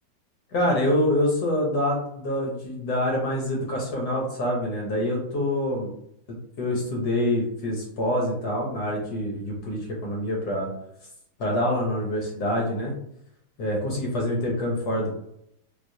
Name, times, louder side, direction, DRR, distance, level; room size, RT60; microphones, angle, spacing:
voice 1, 0.5-5.9 6.3-10.7 11.4-12.9 13.6-15.2, left 1 dB, 65° left, -2 dB, 1.1 m, -26 dB
4.6 x 2.0 x 2.6 m, 0.74 s
omnidirectional pair, 2.3 m